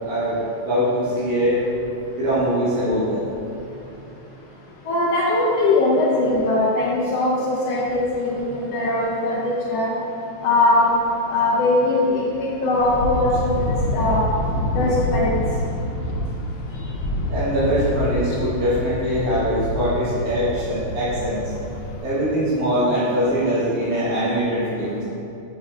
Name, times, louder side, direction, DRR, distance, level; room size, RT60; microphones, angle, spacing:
voice 1, 0.0-1.6 2.2-3.2 17.3-21.4 22.0-25.0, equal, 80° right, -9 dB, 2.6 m, -22 dB
voice 2, 4.8-9.9 10.4-10.9 11.3-14.2 14.7-15.4, left 2 dB, 75° left, -4 dB, 1.5 m, -20 dB
sound 1, 12.8-22.0, left 1 dB, 90° left, 2.1 m, -27 dB
7.3 x 6.5 x 2.4 m, 2.8 s
omnidirectional pair, 3.4 m